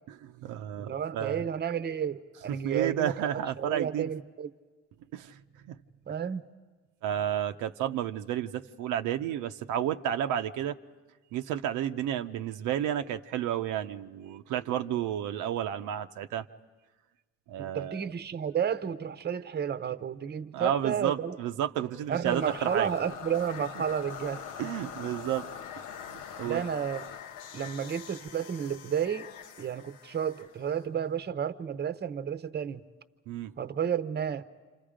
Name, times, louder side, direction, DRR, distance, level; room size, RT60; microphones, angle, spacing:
voice 1, 0.1-1.4 2.5-4.1 5.1-5.8 7.0-10.8 11.3-16.5 17.5-18.1 20.5-22.9 24.6-25.5 26.1-26.6 33.3-33.5, right 10 dB, 85° right, 7 dB, 0.7 m, -31 dB
voice 2, 0.8-4.5 6.1-6.4 17.6-21.4 22.1-24.4 26.4-27.0 27.5-29.3 29.6-32.8 33.6-34.4, right 8 dB, 35° right, 13 dB, 0.8 m, -32 dB
sound 1, 22.2-31.3, left 8 dB, 80° left, 0.8 m, -43 dB
28.5 x 26.5 x 5.0 m, 1.3 s
cardioid pair, 90°, 30 cm